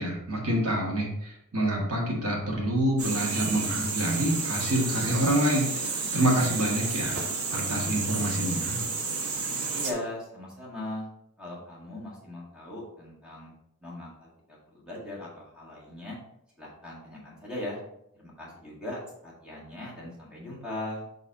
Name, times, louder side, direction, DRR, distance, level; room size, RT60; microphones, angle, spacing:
voice 1, 0.0-7.2 7.5-8.8, right 1 dB, 65° right, -2 dB, 1.7 m, -27 dB
sound 1, 3.0-9.9, right 4 dB, 85° right, 1.0 m, -31 dB
voice 2, 9.7-11.1 11.4-13.5 13.8-16.2 16.6-17.8 18.2-21.0, left 1 dB, 5° right, -6 dB, 1.9 m, -39 dB
6.3 x 4.1 x 4.0 m, 0.77 s
head